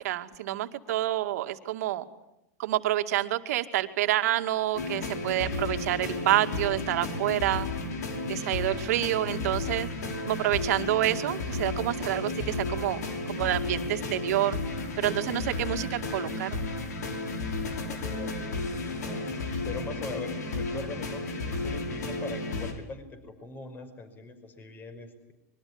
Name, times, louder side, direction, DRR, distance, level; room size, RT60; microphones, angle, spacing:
voice 1, 0.0-2.1 2.6-7.7 8.3-9.9 10.2-13.0 13.3-14.6 15.0-16.6, right 14 dB, 70° right, 7 dB, 2.4 m, -28 dB
sound 1, 4.7-22.7, left 2 dB, 90° left, 6.2 m, -33 dB
voice 2, 17.7-19.3 19.6-25.3, left 3 dB, 20° left, 10 dB, 5.4 m, -42 dB
25.5 x 23.0 x 9.8 m, 0.88 s
hypercardioid pair, 130°, 9 cm